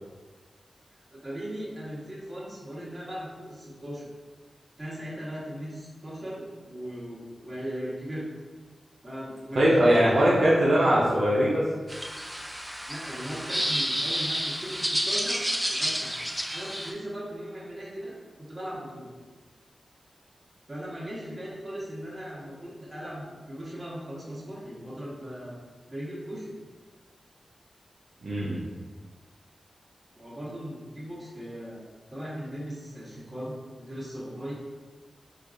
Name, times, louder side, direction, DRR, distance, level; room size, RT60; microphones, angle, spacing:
voice 1, 1.1-4.1 4.8-8.3 9.0-10.6 12.9-16.2 16.5-19.1 20.7-25.5 25.9-26.6 30.2-31.8 32.1-34.5, equal, 20° right, -9 dB, 1.3 m, -38 dB
voice 2, 9.5-11.6 28.2-28.6, equal, 65° right, -7 dB, 0.6 m, -21 dB
sound 1, 11.9-16.9, equal, 5° right, 0.4 m, -30 dB
4.4 x 2.5 x 2.5 m, 1.4 s
wide cardioid pair, 115°, 0 cm